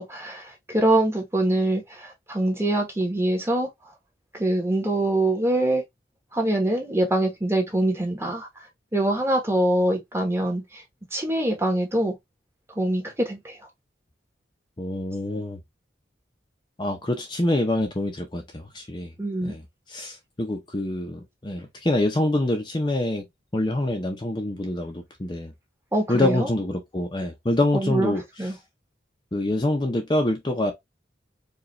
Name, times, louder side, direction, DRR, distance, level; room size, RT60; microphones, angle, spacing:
voice 1, 0.0-3.7 4.3-5.8 6.3-8.5 8.9-10.8 11.1-12.1 12.8-13.6 19.2-19.6 25.9-26.5 27.7-28.1 28.4-28.5, right 1 dB, 15° right, 1.1 m, -24 dB
voice 2, 14.8-15.6 16.8-19.1 19.4-19.6 19.9-23.2 23.5-25.5 26.1-28.5 29.3-30.7, left 1 dB, 25° left, 0.6 m, -26 dB
4.8 x 2.4 x 3.1 m
head